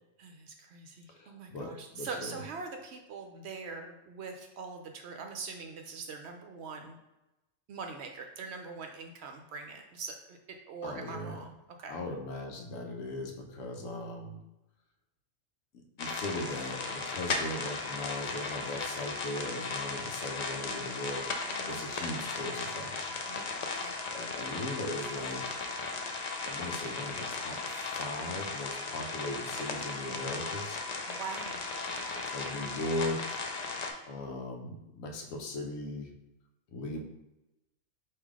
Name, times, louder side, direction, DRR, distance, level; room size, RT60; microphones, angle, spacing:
voice 1, 0.2-7.0 7.7-11.5 11.8-11.9 21.4-21.8 23.3-23.4 23.7-23.9 31.1-31.6, right 4 dB, 65° right, 4 dB, 0.7 m, -43 dB
voice 2, 1.1-2.4 10.8-11.5 11.9-14.4 15.7-23.2 24.1-25.4 26.4-30.8 32.1-33.4 34.1-36.1 36.7-37.0, left 2 dB, 85° left, 3 dB, 1.1 m, -39 dB
sound 1, 16.0-33.9, left 3 dB, 65° left, 0.4 m, -36 dB
3.6 x 2.8 x 4.7 m, 0.96 s
omnidirectional pair, 1.4 m